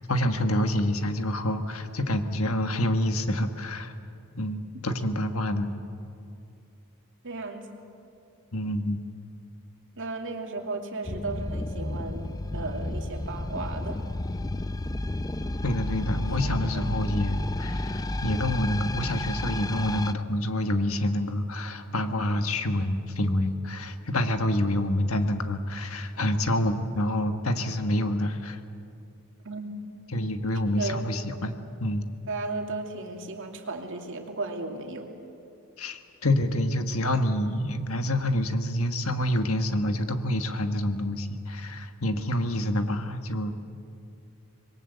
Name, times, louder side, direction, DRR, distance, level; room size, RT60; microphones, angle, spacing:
voice 1, 0.1-3.9 4.3-5.7 8.5-9.0 15.6-28.6 30.1-32.0 35.8-43.5, left 1 dB, 70° left, 7 dB, 1.5 m, -27 dB
voice 2, 7.2-7.7 10.0-14.0 16.4-17.0 29.4-29.7 30.7-31.1 32.3-35.1, right 3 dB, 60° right, 3 dB, 2.6 m, -35 dB
sound 1, 11.0-20.1, left 2 dB, 15° left, 0.5 m, -31 dB
25.5 x 22.0 x 8.1 m, 2.6 s
head